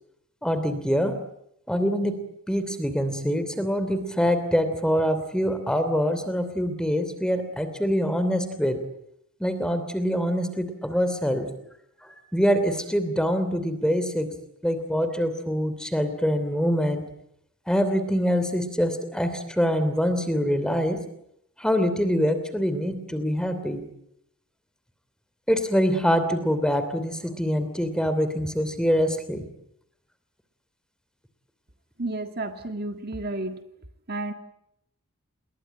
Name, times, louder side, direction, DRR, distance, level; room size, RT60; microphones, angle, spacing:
voice 1, 0.4-1.1 1.7-2.2 2.5-8.8 9.4-11.5 12.3-14.3 14.6-17.0 17.7-21.0 21.6-23.8 25.5-29.4, equal, 5° left, 10 dB, 2.9 m, -24 dB
voice 2, 32.0-33.6 34.1-34.3, right 2 dB, 45° right, 7 dB, 1.8 m, -31 dB
29.0 x 21.0 x 9.0 m, 0.76 s
head